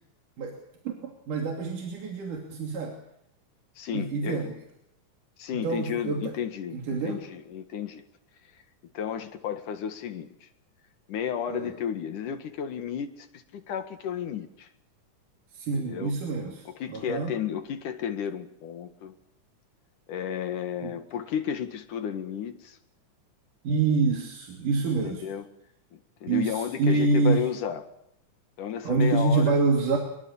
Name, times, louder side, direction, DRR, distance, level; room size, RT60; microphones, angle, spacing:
voice 1, 0.9-3.0 3.9-4.5 5.5-6.3 6.7-7.2 11.5-11.7 15.5-17.3 20.8-20.9 23.6-25.2 26.3-27.4 28.9-30.0, right 4 dB, 90° right, 2 dB, 4.3 m, -26 dB
voice 2, 3.8-4.5 5.4-8.0 8.9-10.5 11.1-14.7 15.7-16.1 16.7-19.1 20.1-22.8 25.0-25.5 25.9-27.8 28.6-29.5, left 8 dB, 80° left, 8 dB, 3.4 m, -33 dB
24.5 x 23.0 x 7.2 m, 0.79 s
omnidirectional pair, 3.5 m